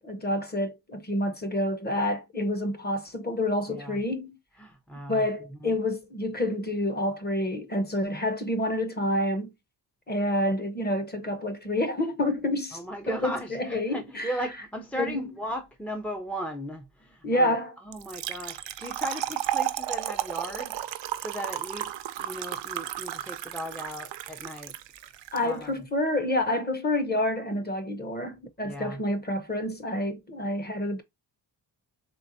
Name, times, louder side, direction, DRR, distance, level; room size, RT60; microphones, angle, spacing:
voice 1, 0.0-4.4 5.1-9.5 10.1-12.8 13.1-14.3 15.0-15.2 17.2-17.7 25.3-31.0, left 1 dB, 20° left, 0.8 m, -28 dB
voice 2, 3.7-4.0 4.6-5.2 5.6-5.8 12.7-17.6 17.9-20.9 21.2-21.9 22.2-24.7 25.4-25.9 28.6-29.0, equal, 5° left, 0.4 m, -37 dB
Trickle dribble / Fill (with liquid), 17.9-25.4, right 12 dB, 80° right, 0.5 m, -33 dB
4.4 x 3.4 x 2.6 m
wide cardioid pair, 130°, 43 cm